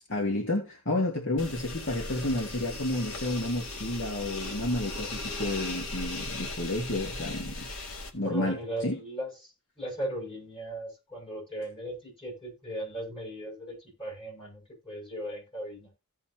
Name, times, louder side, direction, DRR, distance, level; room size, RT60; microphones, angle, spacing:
voice 1, 0.1-7.7 8.1-9.0, left 1 dB, 60° left, 2.4 m, -31 dB
sound 1, 1.4-8.1, left 2 dB, 75° left, 2.2 m, -37 dB
voice 2, 8.2-9.3 9.8-15.9, right 1 dB, 25° left, 6.7 m, -37 dB
16.5 x 5.7 x 2.9 m
head